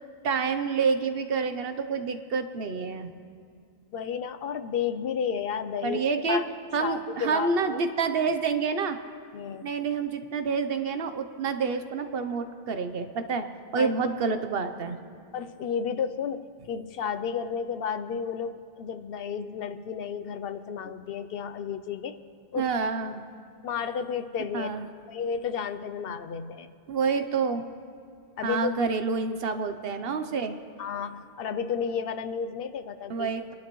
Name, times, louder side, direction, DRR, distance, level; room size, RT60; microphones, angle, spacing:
voice 1, 0.2-3.1 5.8-6.4 6.7-9.0 9.6-13.5 13.7-15.0 22.6-23.2 24.5-24.9 26.9-27.6 28.4-30.6 33.1-33.5, right 5 dB, 65° right, 9 dB, 1.0 m, -28 dB
voice 2, 3.9-6.0 6.3-6.5 6.8-7.8 9.3-9.7 13.8-14.1 15.3-22.1 22.5-22.7 23.6-24.7 25.1-26.7 28.4-28.7 30.8-33.3, left 7 dB, 70° left, 11 dB, 0.8 m, -32 dB
26.0 x 11.5 x 3.1 m, 2.3 s
omnidirectional pair, 1.1 m